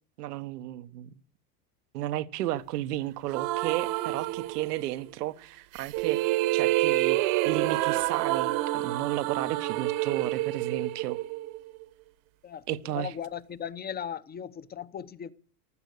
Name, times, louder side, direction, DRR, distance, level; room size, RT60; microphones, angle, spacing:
voice 1, 0.2-1.2 1.9-11.2 12.7-13.1, right 14 dB, 90° right, 1.1 m, -33 dB
sound 1, 3.3-5.0 5.7-11.8, right 17 dB, 60° right, 1.2 m, -28 dB
voice 2, 12.4-15.3, left 8 dB, 20° left, 0.7 m, -37 dB
15.5 x 12.0 x 6.5 m
supercardioid pair, 120°, 46 cm